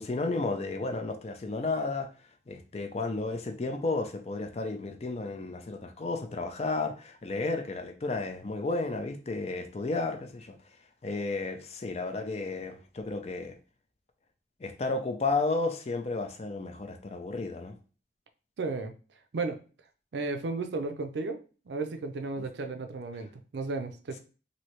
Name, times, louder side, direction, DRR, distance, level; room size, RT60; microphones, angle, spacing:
voice 1, 0.0-2.1 2.5-10.6 11.0-13.6 14.6-17.8, left 3 dB, 35° left, 0.4 m, -32 dB
voice 2, 18.6-18.9 19.3-19.6 20.1-21.4 21.7-24.2, right 3 dB, 70° right, 0.4 m, -34 dB
3.1 x 2.7 x 2.9 m
head